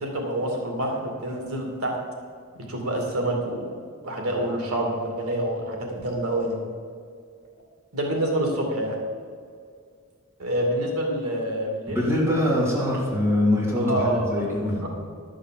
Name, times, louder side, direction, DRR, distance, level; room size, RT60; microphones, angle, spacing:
voice 1, 0.0-1.9 2.7-3.7 4.0-6.6 7.9-9.0 10.4-12.0 13.8-14.9, right 1 dB, 80° right, 0 dB, 2.4 m, -27 dB
voice 2, 11.9-15.1, left 1 dB, 10° right, -6 dB, 3.0 m, -23 dB
12.0 x 6.3 x 7.6 m, 2.1 s
head